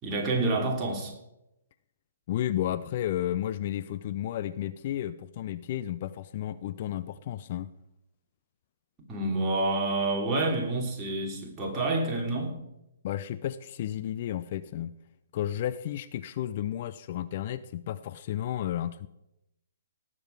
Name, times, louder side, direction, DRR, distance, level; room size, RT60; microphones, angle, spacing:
voice 1, 0.0-1.1 9.1-12.6, right 2 dB, 20° right, 0 dB, 3.0 m, -28 dB
voice 2, 2.3-7.7 13.0-14.9 15.3-19.1, left 12 dB, 45° left, 13 dB, 0.5 m, -32 dB
18.0 x 7.7 x 4.7 m, 0.86 s
figure-of-eight pair, 130°, 0 cm